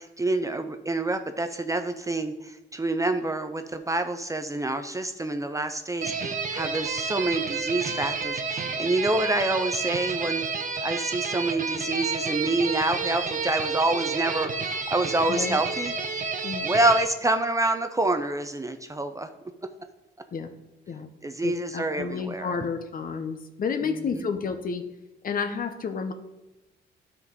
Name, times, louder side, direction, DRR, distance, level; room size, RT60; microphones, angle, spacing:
voice 1, 0.0-10.4 10.8-15.9 16.6-19.3 21.2-22.5 23.8-24.2, right 2 dB, 15° right, 8 dB, 0.5 m, -27 dB
sound 1, 6.0-17.0, right 4 dB, 40° right, 0.8 m, -30 dB
voice 2, 15.3-15.6 16.4-16.7 20.3-20.5 20.9-21.1 21.4-24.8 25.2-26.1, left 5 dB, 45° left, 8 dB, 0.8 m, -30 dB
12.0 x 4.0 x 3.6 m, 1.0 s
cardioid pair, 90°, 20 cm